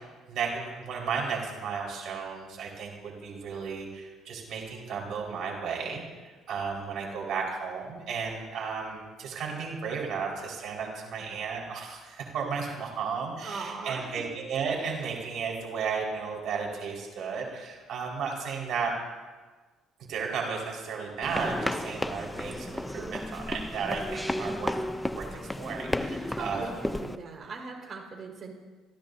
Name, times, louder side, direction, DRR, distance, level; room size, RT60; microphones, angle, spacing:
voice 1, 0.0-18.9 20.1-24.7 25.1-25.3 25.6-26.7, right 5 dB, 65° right, -1 dB, 5.1 m, -34 dB
voice 2, 13.4-14.2 26.1-28.5, right 3 dB, 45° right, 1 dB, 5.0 m, -40 dB
sound 1, 21.2-27.2, left 1 dB, 5° left, 0.7 m, -33 dB
28.5 x 15.5 x 2.8 m, 1.3 s
cardioid pair, 90°, 0 cm